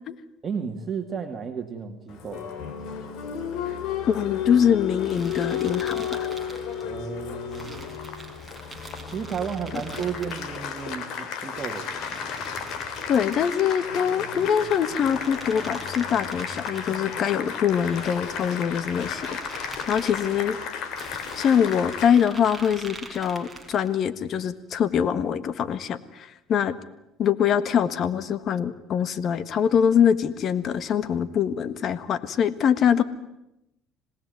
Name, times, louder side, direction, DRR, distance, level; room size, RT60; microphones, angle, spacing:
voice 1, 0.4-2.5 6.8-7.9 9.1-11.9, right 6 dB, 30° right, 4 dB, 2.3 m, -33 dB
Applause, 2.1-22.1, left 7 dB, 65° left, 3.8 m, -33 dB
voice 2, 4.1-6.3 13.0-20.6 21.3-26.7 27.2-33.0, left 8 dB, 50° left, 15 dB, 1.6 m, -24 dB
sound 1, 5.0-6.9 7.5-10.8 11.6-13.7 14.3-17.0 17.6-20.4 21.0-23.9, right 2 dB, ahead, 5.3 m, -44 dB
26.5 x 19.0 x 9.5 m, 0.86 s
cardioid pair, 110°, 0 cm